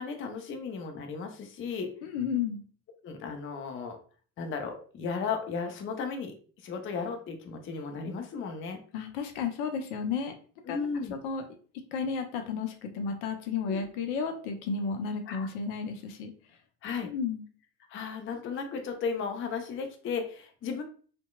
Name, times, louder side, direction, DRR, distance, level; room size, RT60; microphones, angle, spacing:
voice 1, 0.0-1.9 3.0-4.0 4.4-6.3 6.6-8.8 10.7-11.1 13.7-13.8 15.3-15.5 16.8-17.1 17.9-20.8, left 5 dB, 25° left, 5 dB, 0.5 m, -35 dB
voice 2, 2.0-2.6 8.9-10.3 10.7-11.4 11.9-16.3 17.0-17.4, left 5 dB, 70° left, 5 dB, 0.6 m, -33 dB
2.8 x 2.2 x 2.3 m, 0.42 s
hypercardioid pair, 60°, 47 cm